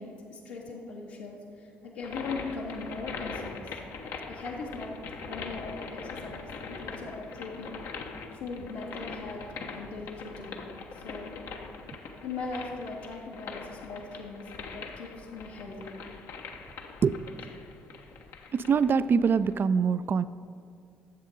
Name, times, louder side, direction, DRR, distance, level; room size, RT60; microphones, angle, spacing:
voice 1, 0.0-3.7 4.3-4.9 5.3-7.8 8.3-10.6 11.0-11.4 12.2-16.0, left 3 dB, 85° left, -5 dB, 1.7 m, -39 dB
sound 1, 2.0-19.5, left 4 dB, 65° left, 1.0 m, -42 dB
voice 2, 17.0-17.4 18.5-20.2, right 6 dB, 40° right, 15 dB, 0.3 m, -24 dB
10.5 x 7.2 x 5.3 m, 2.3 s
hypercardioid pair, 50°, 5 cm